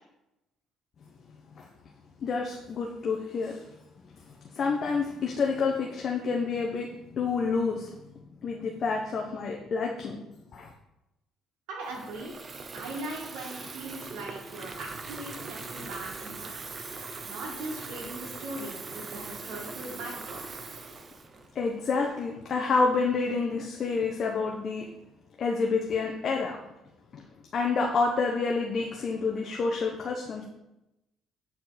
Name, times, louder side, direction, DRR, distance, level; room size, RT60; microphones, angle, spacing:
voice 1, 2.2-3.6 4.5-7.9 8.4-10.2 10.5-10.7 21.5-24.9 25.4-26.6 27.1-27.2 27.5-30.4, left 4 dB, 50° left, 1 dB, 0.8 m, -28 dB
voice 2, 11.7-12.3 12.7-16.6 17.3-20.6, right 2 dB, 85° right, -3 dB, 2.0 m, -40 dB
Water tap faucet / Fill (with liquid), 11.8-22.1, right 4 dB, 35° right, 0.7 m, -41 dB
8.0 x 4.6 x 4.2 m, 0.90 s
cardioid pair, 105°, 0 cm